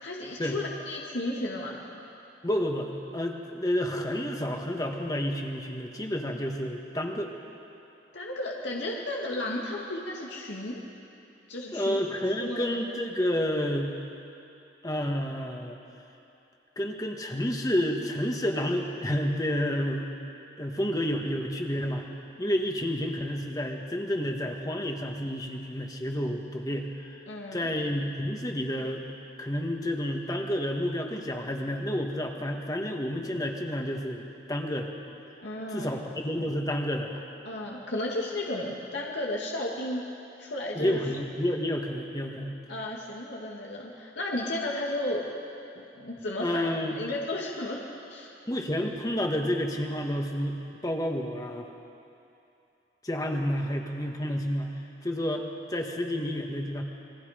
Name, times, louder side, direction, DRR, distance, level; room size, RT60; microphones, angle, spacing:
voice 1, 0.0-1.8 8.1-10.8 11.5-12.0 12.4-12.8 27.3-27.7 35.4-35.9 37.4-40.1 40.4-41.1 42.7-45.3 45.8-46.7 46.9-48.3, left 1 dB, 85° left, -3 dB, 2.4 m, -33 dB
voice 2, 2.4-7.3 11.7-13.9 14.8-15.8 16.7-20.1 20.6-22.0 22.4-27.2 27.5-29.1 29.4-34.9 35.7-37.2 40.7-42.6 46.4-47.0 48.5-51.7 53.0-54.7 55.0-55.4 55.7-56.8, equal, 20° left, 2 dB, 1.7 m, -30 dB
29.0 x 22.0 x 5.2 m, 2.7 s
head